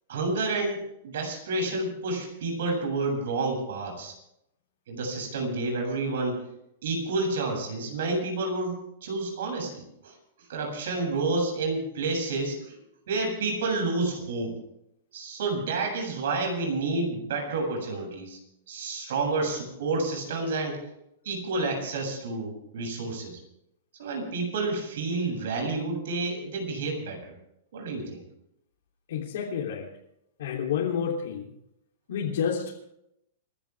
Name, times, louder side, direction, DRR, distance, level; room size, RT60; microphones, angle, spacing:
voice 1, 0.1-4.1 4.9-6.4 6.8-10.1 10.5-12.8 13.1-14.5 15.1-18.4 18.7-20.8 21.2-23.4 24.0-27.3 27.7-28.2, right 3 dB, 70° right, 2 dB, 7.7 m, -29 dB
voice 2, 29.1-29.9 30.4-31.5 32.1-32.9, left 7 dB, 70° left, -4 dB, 3.4 m, -29 dB
29.5 x 12.5 x 3.6 m, 0.79 s
supercardioid pair, 165°, 0 cm